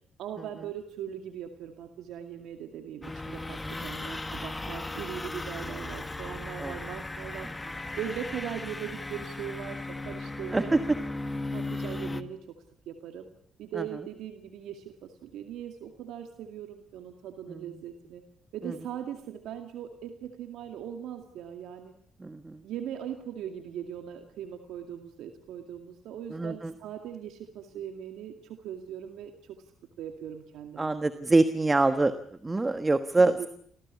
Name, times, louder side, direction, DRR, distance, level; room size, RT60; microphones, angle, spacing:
voice 1, 0.2-7.5 8.0-10.8 11.5-12.6 12.9-13.3 13.6-18.2 18.5-21.9 22.6-29.6 30.0-31.0 33.2-33.5, right 9 dB, 85° right, 5 dB, 2.2 m, -40 dB
sound 1, 3.0-12.2, left 2 dB, 15° left, 1.5 m, -36 dB
voice 2, 22.2-22.6 26.3-26.7 30.8-32.1 32.4-33.3, right 2 dB, 20° right, 10 dB, 1.4 m, -25 dB
27.0 x 16.0 x 8.4 m, 0.64 s
cardioid pair, 90°, 0 cm